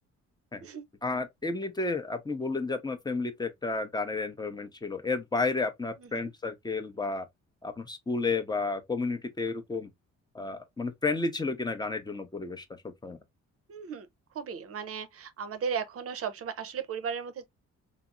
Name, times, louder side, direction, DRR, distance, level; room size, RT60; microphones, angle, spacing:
voice 1, 1.0-7.3 7.6-9.9 10.3-13.2, left 3 dB, 15° left, 0.6 m, -32 dB
voice 2, 13.7-14.1 14.3-17.4, right 6 dB, 50° right, 0.6 m, -35 dB
3.4 x 2.0 x 2.4 m
cardioid pair, 90°, 30 cm